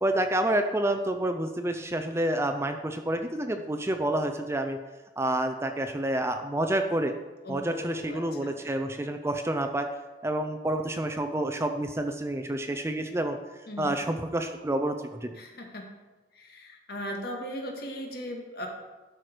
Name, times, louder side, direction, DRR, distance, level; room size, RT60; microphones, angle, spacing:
voice 1, 0.0-4.8 5.2-7.1 7.5-9.9 10.2-13.4 13.8-15.3, right 1 dB, 15° right, 6 dB, 0.5 m, -28 dB
voice 2, 7.4-8.6 13.7-13.9 15.4-15.9 16.3-18.7, equal, 55° left, 2 dB, 1.7 m, -38 dB
12.0 x 6.0 x 5.0 m, 1.2 s
head